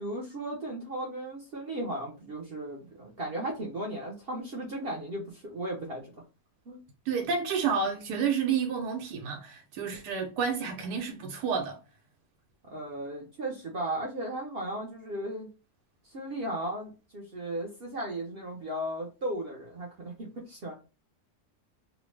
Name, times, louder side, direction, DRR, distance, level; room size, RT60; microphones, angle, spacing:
voice 1, 0.0-6.1 6.7-6.8 12.6-15.5 16.0-20.7, right 1 dB, 55° right, 0.7 m, -36 dB
voice 2, 7.1-11.8, right 6 dB, 85° right, 1.2 m, -30 dB
2.9 x 2.1 x 3.1 m
omnidirectional pair, 1.7 m